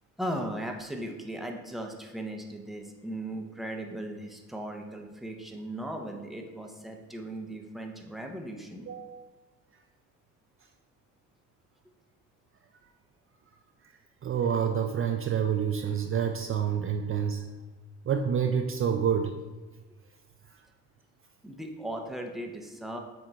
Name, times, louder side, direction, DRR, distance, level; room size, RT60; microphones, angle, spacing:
voice 1, 0.2-8.9 21.4-23.0, right 1 dB, ahead, 2 dB, 0.8 m, -37 dB
voice 2, 8.9-9.2 14.2-17.4 18.1-19.3, right 7 dB, 40° right, 5 dB, 0.5 m, -28 dB
7.6 x 2.7 x 4.6 m, 1.2 s
cardioid pair, 90°, 33 cm